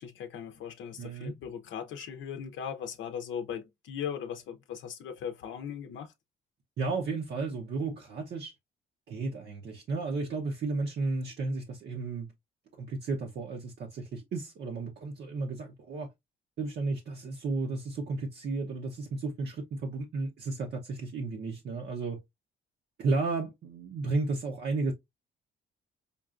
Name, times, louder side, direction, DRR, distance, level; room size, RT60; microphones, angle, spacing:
voice 1, 0.0-6.1, left 8 dB, 75° left, 0.6 m, -38 dB
voice 2, 1.0-1.3 6.8-8.6 9.1-12.3 12.8-16.1 16.6-22.2 23.0-24.9, right 3 dB, 55° right, 0.7 m, -33 dB
5.2 x 2.3 x 2.4 m
cardioid pair, 90°, 20 cm